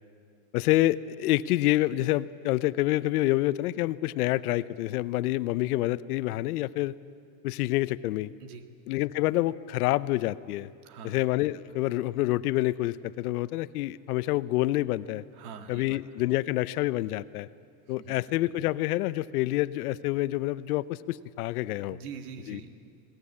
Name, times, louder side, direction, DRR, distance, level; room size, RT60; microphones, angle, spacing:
voice 1, 0.5-7.0 7.4-8.3 8.9-10.7 11.0-15.2 15.7-17.5 17.9-22.0 22.5-22.6, left 16 dB, 85° left, 17 dB, 0.7 m, -27 dB
voice 2, 10.9-11.2 15.4-16.0 18.0-18.2 21.9-22.9, right 6 dB, 80° right, 7 dB, 2.0 m, -43 dB
21.0 x 17.5 x 8.6 m, 2.3 s
supercardioid pair, 120°, 44 cm